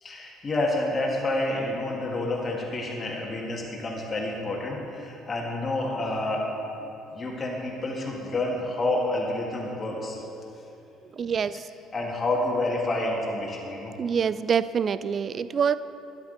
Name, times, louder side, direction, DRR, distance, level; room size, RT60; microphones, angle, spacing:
voice 1, 0.0-6.5 6.7-10.2 11.9-13.9, left 2 dB, 30° left, -2 dB, 1.9 m, -29 dB
voice 2, 11.1-11.7 14.0-15.8, right 7 dB, 40° right, 15 dB, 0.4 m, -25 dB
13.0 x 9.8 x 4.0 m, 3.0 s
figure-of-eight pair, 55°, 0 cm